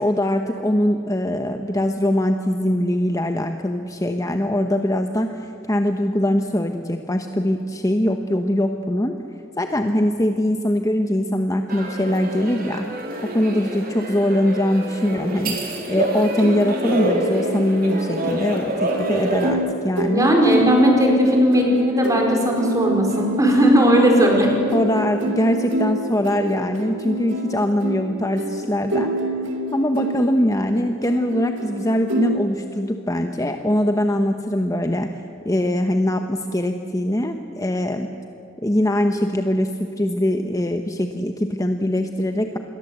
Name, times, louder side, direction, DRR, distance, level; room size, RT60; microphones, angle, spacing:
voice 1, 0.0-9.1 9.6-12.9 13.2-15.6 15.9-20.3 24.7-29.1 29.7-35.1 35.4-38.1 38.6-42.6, left 1 dB, 15° left, 6 dB, 0.9 m, -22 dB
sound 1, 11.7-19.5, right 1 dB, 50° right, 4.0 m, -27 dB
Amateur Ukulele Music Loop, 16.4-32.4, right 1 dB, 70° right, 2.4 m, -28 dB
voice 2, 20.1-24.5, equal, 15° right, 1 dB, 4.7 m, -17 dB
27.0 x 21.5 x 8.0 m, 2.9 s
head